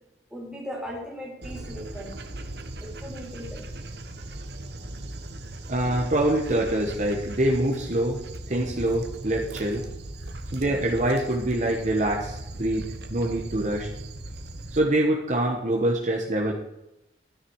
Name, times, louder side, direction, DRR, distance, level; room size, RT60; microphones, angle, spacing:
voice 1, 0.3-2.1 2.8-3.6 5.4-5.5 10.2-10.4, equal, 5° right, -3 dB, 3.3 m, -38 dB
Dog, 1.4-14.8, right 1 dB, 65° right, 1.3 m, -38 dB
voice 2, 5.7-8.2 8.5-9.8 10.5-13.9 14.7-16.5, right 1 dB, 40° right, 0 dB, 1.3 m, -25 dB
13.0 x 9.8 x 4.8 m, 0.91 s
head